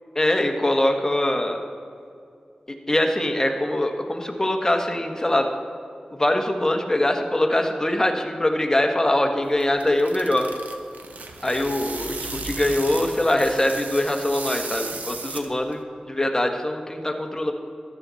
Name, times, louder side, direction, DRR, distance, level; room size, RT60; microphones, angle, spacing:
voice 1, 0.1-1.6 2.9-5.5 6.1-10.5 11.4-17.5, left 1 dB, 20° left, 3 dB, 1.4 m, -23 dB
sound 1, 9.4-15.8, right 3 dB, 75° right, 1.1 m, -36 dB
14.5 x 11.5 x 4.1 m, 2.5 s
wide cardioid pair, 60°, 3 cm